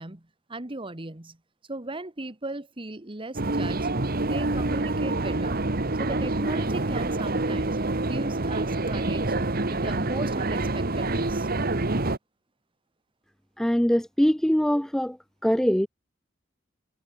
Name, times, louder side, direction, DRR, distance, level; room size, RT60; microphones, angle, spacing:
voice 1, 0.0-1.4 1.7-3.9 4.2-5.7 6.0-7.8 8.1-9.3 9.7-11.5, right 2 dB, 25° right, 1.6 m, -37 dB
sound 1, 3.3-12.2, right 2 dB, 50° right, 1.6 m, -27 dB
voice 2, 13.6-15.2 15.4-15.9, equal, ahead, 0.4 m, -22 dB
head